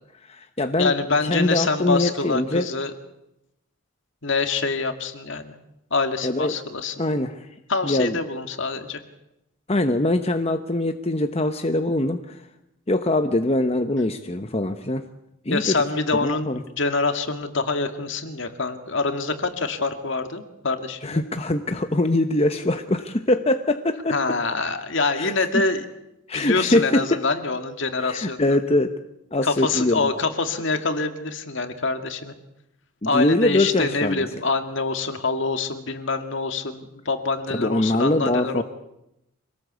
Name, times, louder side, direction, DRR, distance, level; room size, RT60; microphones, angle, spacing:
voice 1, 0.3-1.0 1.3-2.7 6.2-6.5 7.0-7.5 7.8-8.2 9.7-12.4 12.9-15.0 15.4-15.8 16.2-16.6 21.0-24.2 25.2-25.6 26.3-27.2 28.0-28.9 29.3-30.0 33.0-34.3 37.5-38.6, left 1 dB, 30° left, 7 dB, 1.0 m, -23 dB
voice 2, 0.8-2.9 4.2-5.5 5.9-7.0 7.7-9.0 15.5-16.5 16.8-21.2 24.1-25.9 26.3-28.4 29.4-32.3 33.0-38.6, left 3 dB, 60° left, 7 dB, 2.2 m, -25 dB
26.0 x 18.5 x 8.2 m, 0.86 s
head